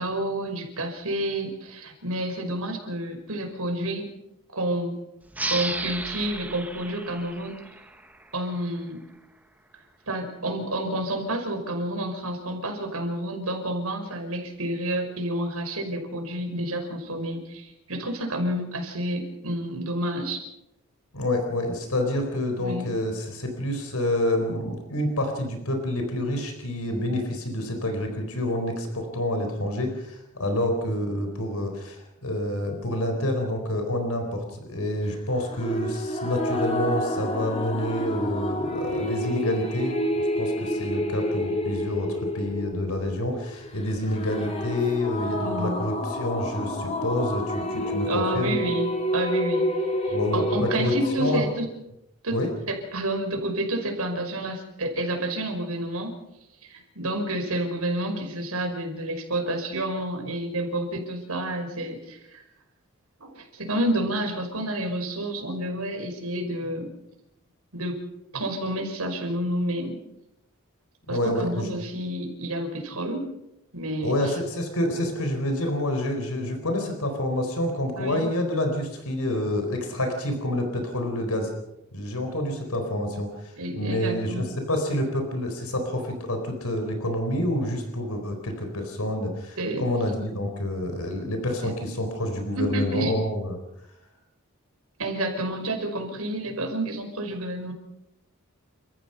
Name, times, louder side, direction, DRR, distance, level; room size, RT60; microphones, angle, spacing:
voice 1, 0.0-4.1 4.5-5.0 5.5-7.6 8.3-9.0 10.1-20.4 22.6-22.9 45.3-45.8 47.7-49.7 50.0-51.7 52.2-52.4 52.7-56.1 56.6-62.4 63.2-66.9 67.7-68.0 68.3-70.0 71.1-73.3 73.7-74.3 78.0-78.3 83.6-84.5 89.6-89.8 91.6-91.7 92.6-93.2 95.0-97.7, right 1 dB, 90° right, 4 dB, 5.5 m, -29 dB
sound 1, 5.3-8.6, right 2 dB, 5° right, 1.1 m, -34 dB
voice 2, 21.1-40.0 40.4-48.6 50.1-51.4 52.3-52.5 71.1-71.7 74.0-81.5 81.9-93.6, left 1 dB, 90° left, 5 dB, 4.3 m, -28 dB
sound 2, 35.5-51.5, equal, 30° left, 3.0 m, -29 dB
30.0 x 15.0 x 5.8 m, 0.85 s
head